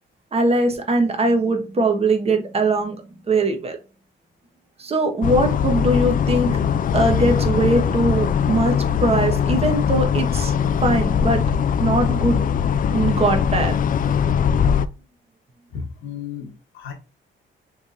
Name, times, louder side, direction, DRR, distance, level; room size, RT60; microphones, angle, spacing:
voice 1, 0.3-3.8 4.8-6.6 6.9-8.7 9.0-10.5 10.8-11.4 11.8-12.4 12.9-13.8, right 2 dB, 30° right, 1.2 m, -21 dB
sound 1, 5.2-14.9, left 7 dB, 45° left, 0.4 m, -21 dB
voice 2, 15.7-16.9, left 7 dB, 85° left, 1.3 m, -34 dB
5.1 x 3.4 x 2.5 m
cardioid pair, 90°, 20 cm